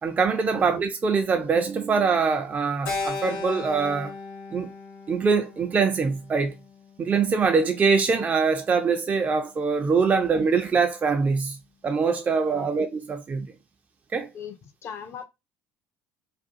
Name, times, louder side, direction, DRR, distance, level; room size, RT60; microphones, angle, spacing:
voice 1, 0.0-4.1 4.5-4.7 5.1-6.5 7.0-11.6 11.8-13.5 14.1-14.3, right 5 dB, 25° right, 0.4 m, -23 dB
Keyboard (musical), 2.9-7.3, left 3 dB, 65° left, 1.1 m, -36 dB
voice 2, 14.3-15.2, left 7 dB, 40° left, 0.4 m, -39 dB
2.5 x 2.3 x 2.5 m
figure-of-eight pair, 60°, 6 cm